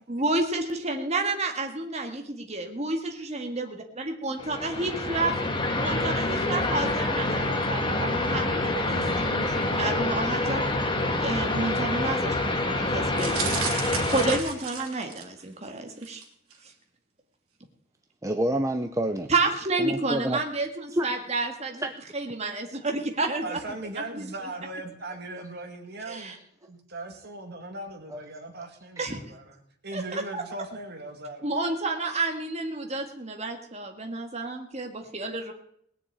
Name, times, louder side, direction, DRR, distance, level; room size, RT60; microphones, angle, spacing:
voice 1, 0.1-5.3 5.8-10.6 11.2-13.7 14.1-16.2 19.3-21.9 22.1-23.6 24.0-24.3 26.1-26.4 29.0-29.2 29.9-30.4 31.4-35.5, right 2 dB, 30° right, 3 dB, 1.8 m, -30 dB
sound 1, 4.4-14.4, left 2 dB, 20° left, 1.4 m, -27 dB
sound 2, 13.2-15.4 16.0-16.2 16.5-16.6, right 6 dB, 85° right, 3.2 m, -33 dB
voice 2, 18.2-19.3 19.8-20.4 20.9-21.1 21.8-21.9 26.2-26.3 28.1-28.2 29.0-29.1, right 1 dB, 15° right, 6 dB, 0.6 m, -28 dB
voice 3, 23.4-26.3 26.7-29.6 29.8-31.5, right 2 dB, 50° right, 4 dB, 2.3 m, -39 dB
19.0 x 6.9 x 8.7 m, 0.70 s
head